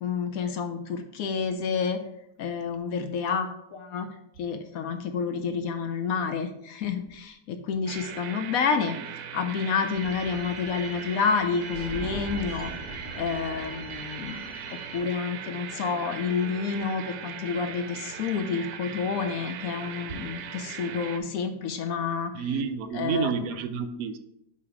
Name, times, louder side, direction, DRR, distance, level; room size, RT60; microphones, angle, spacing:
voice 1, 0.0-2.0 2.4-4.1 4.4-9.0 9.3-22.5 22.9-23.3, left 6 dB, 70° left, 7 dB, 0.8 m, -29 dB
sound 1, 7.9-21.2, right 8 dB, 90° right, 1.3 m, -39 dB
sound 2, 9.9-15.0, right 1 dB, 20° right, 1.9 m, -41 dB
voice 2, 22.3-24.2, right 6 dB, 70° right, 9 dB, 0.9 m, -29 dB
8.0 x 2.9 x 4.8 m, 0.78 s
omnidirectional pair, 1.9 m